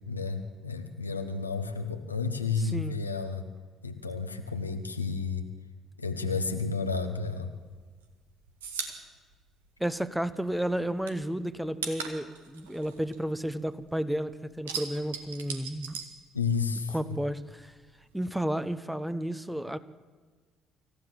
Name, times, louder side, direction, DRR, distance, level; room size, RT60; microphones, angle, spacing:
voice 1, 0.1-3.4 3.8-5.5 6.0-7.5 16.3-16.9, left 4 dB, 85° left, 6 dB, 1.1 m, -31 dB
voice 2, 2.6-3.0 9.8-16.0 16.9-17.7 18.1-19.8, right 1 dB, 5° right, 13 dB, 1.1 m, -32 dB
sound 1, 7.6-10.4 10.6-13.9 14.2-16.9 17.1-18.2, right 6 dB, 75° right, 1.8 m, -40 dB
25.5 x 15.5 x 7.7 m, 1.4 s
figure-of-eight pair, 50°, 0 cm